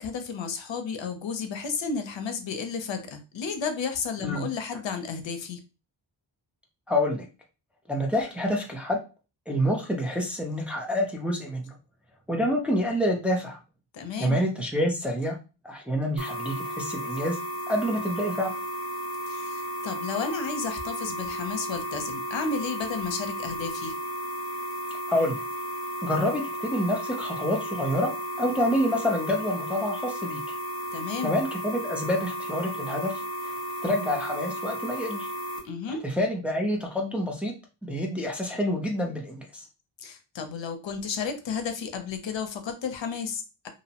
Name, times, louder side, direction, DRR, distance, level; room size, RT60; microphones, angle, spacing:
voice 1, 0.0-5.6 13.9-14.4 19.3-23.9 30.9-31.3 35.6-36.0 40.0-43.7, left 5 dB, 75° left, 7 dB, 0.6 m, -32 dB
voice 2, 6.9-7.3 7.9-9.0 9.5-11.7 12.3-13.6 14.2-15.4 15.6-17.4 17.7-18.5 25.1-25.4 26.0-28.1 28.4-30.4 31.2-33.5 33.8-35.3 36.0-37.5 37.8-39.6, equal, 5° right, -1 dB, 0.4 m, -27 dB
sound 1, 16.2-35.6, equal, 40° right, 0.7 m, -34 dB
2.6 x 2.0 x 2.7 m, 0.31 s
wide cardioid pair, 130°, 45 cm